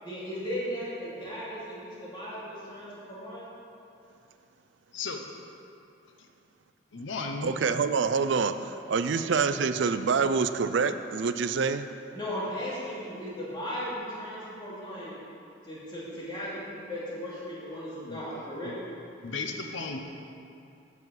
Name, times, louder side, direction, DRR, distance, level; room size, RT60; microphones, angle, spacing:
voice 1, 0.0-3.5 12.1-15.2 15.6-18.7, equal, 25° left, -9 dB, 2.5 m, -36 dB
voice 2, 4.9-5.2 6.9-7.5 18.0-18.2 18.6-18.8 19.2-20.0, left 4 dB, 80° left, 3 dB, 0.7 m, -35 dB
voice 3, 7.4-11.9, right 5 dB, 70° right, 10 dB, 0.4 m, -26 dB
8.2 x 5.5 x 7.5 m, 2.6 s
head